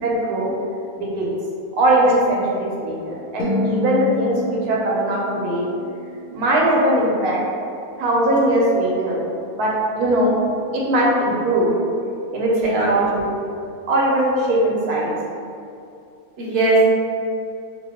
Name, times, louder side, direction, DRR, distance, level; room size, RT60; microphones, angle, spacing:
voice 1, 0.0-0.5 1.0-1.3 1.8-5.7 6.3-7.4 8.0-9.2 9.6-9.7 10.0-10.4 10.7-11.7 12.3-13.3 13.9-15.2, right 1 dB, 80° right, -4 dB, 1.2 m, -20 dB
sound 1, 3.4-7.7, left 1 dB, 70° left, 0.9 m, -29 dB
voice 2, 12.5-12.9 16.4-16.9, right 3 dB, 50° right, -6 dB, 0.8 m, -18 dB
2.9 x 2.8 x 2.8 m, 2.5 s
omnidirectional pair, 1.6 m